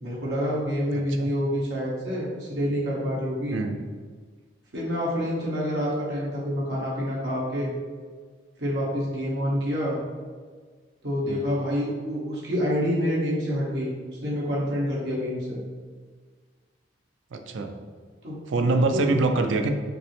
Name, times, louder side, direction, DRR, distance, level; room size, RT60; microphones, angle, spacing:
voice 1, 0.0-3.6 4.7-7.7 8.6-10.0 11.0-13.9 14.2-15.6 18.2-19.1, equal, 60° right, -5 dB, 1.2 m, -27 dB
voice 2, 17.3-17.7 18.5-19.7, right 3 dB, 90° right, 6 dB, 0.4 m, -24 dB
5.2 x 2.1 x 3.1 m, 1.5 s
head